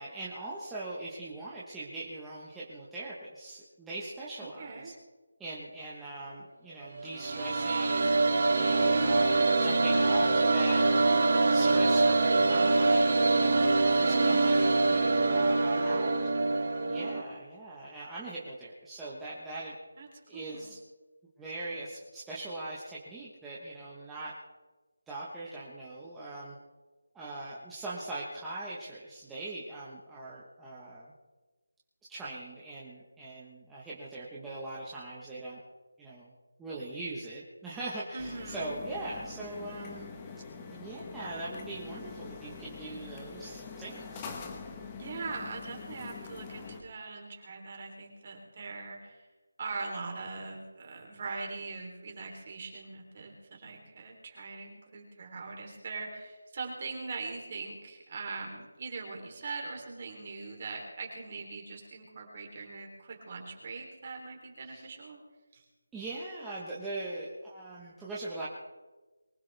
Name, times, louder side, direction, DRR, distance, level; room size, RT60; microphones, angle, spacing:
voice 1, 0.0-4.9 5.4-8.2 8.6-10.8 11.5-16.1 16.9-19.8 20.3-20.8 21.4-24.4 25.1-26.6 27.1-31.1 32.1-35.6 36.0-36.3 36.6-40.1 40.7-44.3 64.6-64.9 65.9-68.5, right 2 dB, 5° right, -8 dB, 1.3 m, -41 dB
voice 2, 4.4-4.9 15.7-16.2 20.0-20.1 20.3-20.7 38.1-38.8 45.0-49.3 49.6-65.2 65.5-65.6, right 4 dB, 30° right, 1 dB, 3.4 m, -41 dB
sound 1, 7.0-17.2, right 3 dB, 45° right, 2.7 m, -24 dB
sound 2, 38.2-46.8, left 5 dB, 15° left, 1.2 m, -44 dB
23.5 x 16.0 x 3.5 m, 1.2 s
figure-of-eight pair, 175°, 0 cm